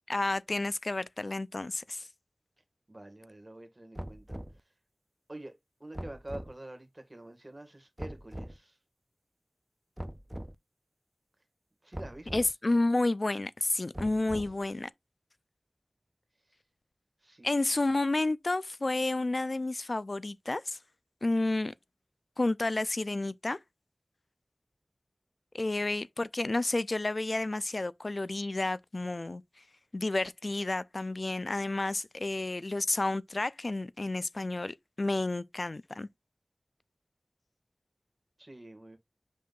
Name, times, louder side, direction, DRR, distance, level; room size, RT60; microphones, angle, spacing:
voice 1, 0.1-2.1 12.3-14.9 17.4-20.8 21.2-21.7 22.4-23.6 25.5-29.4 29.9-36.1, left 2 dB, 55° left, 0.4 m, -30 dB
voice 2, 2.9-4.4 5.3-8.8 11.8-12.3 12.6-12.8 17.2-17.7 38.4-39.0, right 1 dB, 35° right, 1.8 m, -47 dB
sound 1, 3.9-4.6 5.9-6.5 8.0-8.6 10.0-10.5 11.9-12.5 13.9-14.7, equal, 15° right, 0.4 m, -41 dB
7.5 x 5.5 x 2.4 m
wide cardioid pair, 60°, 0 cm